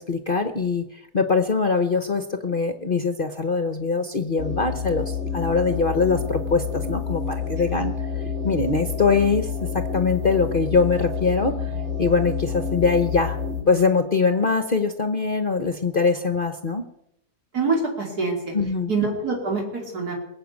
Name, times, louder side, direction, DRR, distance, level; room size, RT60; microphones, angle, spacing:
voice 1, 0.0-11.7 12.0-13.4 13.6-16.8 18.5-18.9, left 4 dB, 40° left, 8 dB, 0.9 m, -23 dB
sound 1, 4.4-13.6, left 6 dB, 45° right, 3.0 m, -29 dB
voice 2, 17.5-18.5 18.9-20.1, right 4 dB, 75° right, 0 dB, 3.4 m, -25 dB
22.0 x 7.9 x 8.2 m, 0.82 s
omnidirectional pair, 1.7 m